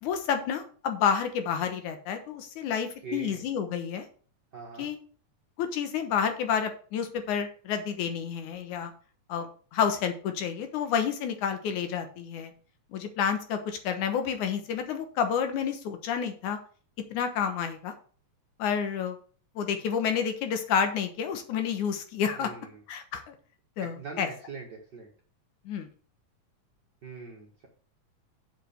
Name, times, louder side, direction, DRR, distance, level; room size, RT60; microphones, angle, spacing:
voice 1, 0.0-4.1 4.8-5.0 5.6-8.9 9.3-12.5 12.9-16.6 17.1-17.9 18.6-19.2 19.6-22.5 22.9-23.3 23.8-24.3 25.7-25.9, left 7 dB, 85° left, 7 dB, 2.7 m, -29 dB
voice 2, 3.0-3.4 4.5-4.9 22.4-22.8 23.8-25.1 27.0-27.7, right 4 dB, 45° right, -1 dB, 1.6 m, -42 dB
7.5 x 5.1 x 6.6 m, 0.42 s
omnidirectional pair, 3.4 m